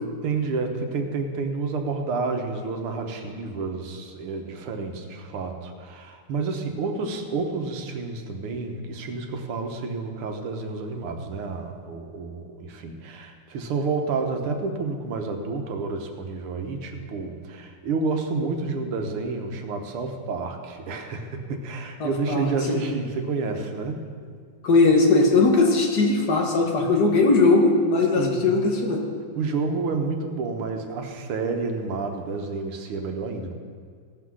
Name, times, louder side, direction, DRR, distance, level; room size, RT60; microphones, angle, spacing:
voice 1, 0.2-24.1 28.2-28.7 29.4-33.6, right 4 dB, 80° right, 5 dB, 2.0 m, -29 dB
voice 2, 22.0-22.8 24.6-29.0, left 3 dB, 50° left, 1 dB, 2.0 m, -19 dB
17.0 x 6.0 x 6.3 m, 2.1 s
omnidirectional pair, 2.4 m